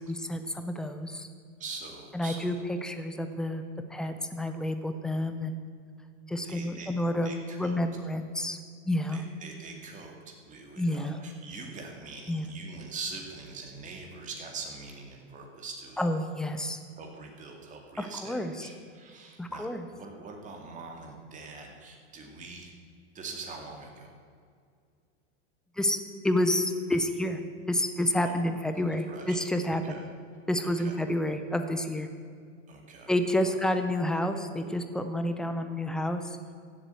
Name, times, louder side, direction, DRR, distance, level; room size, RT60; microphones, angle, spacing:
voice 1, 0.1-1.3 2.1-3.6 3.9-5.5 6.3-8.6 8.9-9.2 10.8-11.2 12.3-12.5 16.0-16.8 18.0-18.5 19.4-19.9 25.8-27.4 27.7-29.8 30.5-32.1 33.1-36.4, left 1 dB, ahead, 7 dB, 0.4 m, -29 dB
voice 2, 1.6-2.6 6.4-6.9 7.2-7.8 9.1-16.1 17.0-19.7 19.9-22.7 23.1-24.1 28.2-28.4 29.1-29.4 29.7-30.0 30.6-31.0 32.7-33.1 33.4-33.7, right 4 dB, 20° right, 2 dB, 2.3 m, -43 dB
15.5 x 7.7 x 8.1 m, 2.2 s
supercardioid pair, 150°, 36 cm